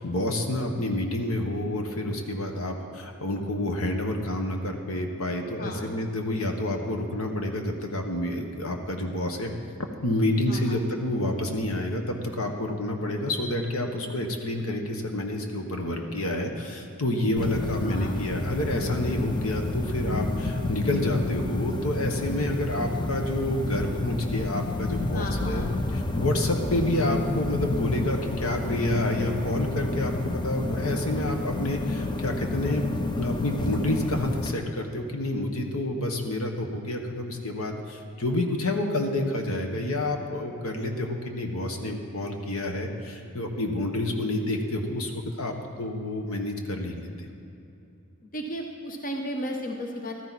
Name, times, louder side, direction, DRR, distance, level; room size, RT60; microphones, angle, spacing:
voice 1, 0.0-9.5 10.0-25.6 25.9-32.9 33.2-47.3, left 1 dB, 70° left, 4 dB, 1.3 m, -29 dB
voice 2, 10.5-10.8 17.8-18.2 25.1-25.7 48.2-50.1, equal, 40° left, 2 dB, 0.9 m, -34 dB
sound 1, 17.4-34.5, left 2 dB, 20° left, 0.6 m, -30 dB
15.0 x 13.0 x 4.2 m, 2.8 s
head